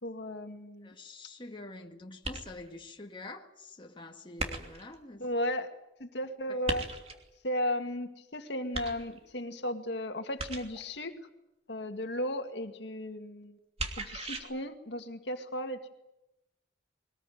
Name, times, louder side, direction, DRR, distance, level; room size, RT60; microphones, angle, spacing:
voice 1, 0.0-0.9 5.2-5.7 6.0-6.8 7.4-11.2 11.7-13.6 14.0-15.8, left 1 dB, 65° left, 2.1 m, -35 dB
voice 2, 0.8-5.3 6.5-6.6, left 2 dB, 25° left, 1.9 m, -46 dB
sound 1, 2.2-2.8 4.4-5.0 6.7-7.3 8.7-9.4 10.4-10.9 13.8-14.4, right 2 dB, 35° right, 3.0 m, -37 dB
22.5 x 20.0 x 9.3 m
head